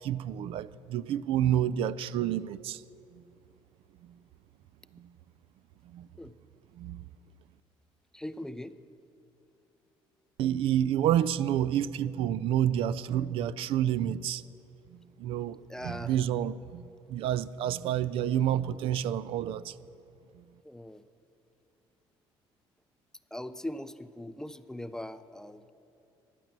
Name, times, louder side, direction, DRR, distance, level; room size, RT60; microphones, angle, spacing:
voice 1, 0.0-2.8 5.0-5.1 5.9-6.1 6.8-7.0 10.4-14.4 15.2-15.6 15.8-19.7, right 11 dB, 70° right, 0.4 m, -29 dB
voice 2, 8.1-8.8 15.7-16.1 20.6-21.0 23.3-25.7, left 1 dB, 5° left, 0.4 m, -40 dB
15.0 x 10.5 x 7.3 m
cardioid pair, 140°, 10 cm